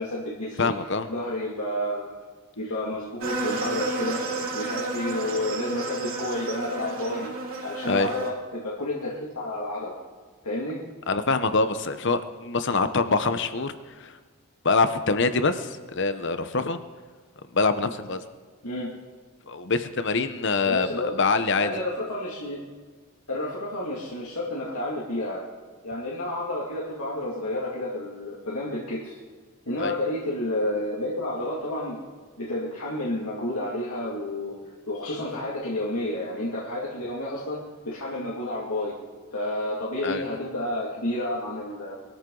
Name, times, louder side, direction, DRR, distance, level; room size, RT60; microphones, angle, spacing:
voice 1, 0.0-0.7 1.1-2.2 2.6-4.3 4.5-7.3 7.6-10.0 10.4-10.8 18.6-18.9 20.7-21.1 21.6-22.6 23.3-25.5 25.8-29.2 29.7-32.0 32.4-34.6 34.9-38.9 39.3-41.9, left 1 dB, 85° left, -5 dB, 2.3 m, -30 dB
voice 2, 0.6-1.1 7.9-8.1 11.1-13.7 14.0-14.1 14.6-16.8 17.5-18.2 19.5-20.9 21.2-21.7 29.8-30.0 40.0-40.2, left 4 dB, 55° left, 11 dB, 0.9 m, -24 dB
sound 1, 3.2-8.3, right 3 dB, 65° right, 3.0 m, -32 dB
23.0 x 13.5 x 3.9 m, 1.5 s
head